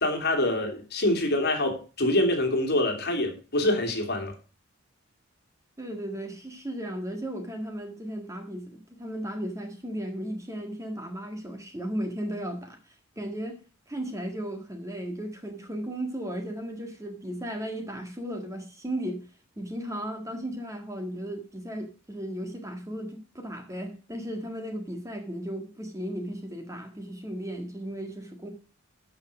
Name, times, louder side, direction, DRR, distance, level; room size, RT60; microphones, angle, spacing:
voice 1, 0.0-4.3, left 1 dB, 50° left, 2.8 m, -25 dB
voice 2, 5.8-19.3 19.6-28.5, right 1 dB, 15° right, 1.6 m, -35 dB
12.5 x 5.8 x 4.9 m
head